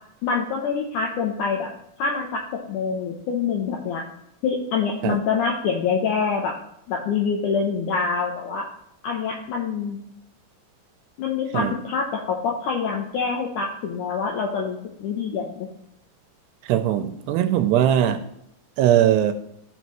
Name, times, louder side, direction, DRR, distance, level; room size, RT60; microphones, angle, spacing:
voice 1, 0.2-1.7 2.0-4.0 4.4-6.5 6.9-8.7 9.0-10.0 11.2-15.7, left 5 dB, 80° left, 0 dB, 1.8 m, -25 dB
voice 2, 16.6-18.2 18.8-19.3, right 11 dB, 90° right, 9 dB, 2.8 m, -20 dB
13.0 x 5.7 x 3.1 m, 0.76 s
omnidirectional pair, 4.8 m